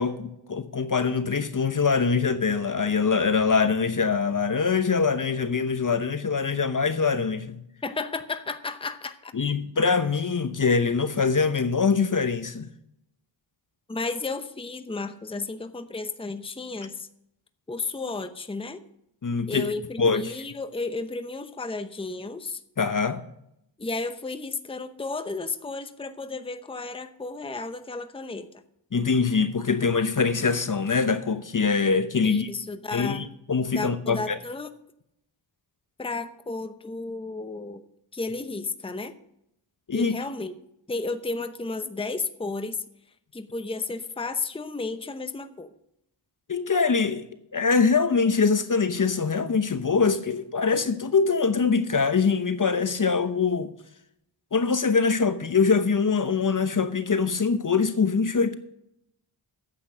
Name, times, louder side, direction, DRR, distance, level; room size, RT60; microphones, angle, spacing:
voice 1, 0.0-7.6 9.3-12.7 19.2-19.7 20.0-20.3 22.8-23.3 28.9-32.5 32.9-34.4 39.9-40.2 46.5-53.7 54.5-58.5, left 5 dB, 40° left, 0.9 m, -23 dB
voice 2, 7.8-9.3 13.9-17.1 17.7-18.8 19.5-22.6 23.8-28.5 32.2-33.3 33.7-34.7 36.0-37.8 38.1-39.2 39.9-40.5 40.9-42.8 43.3-45.7, left 3 dB, 10° left, 0.8 m, -33 dB
9.7 x 8.2 x 6.5 m
cardioid pair, 70°, 48 cm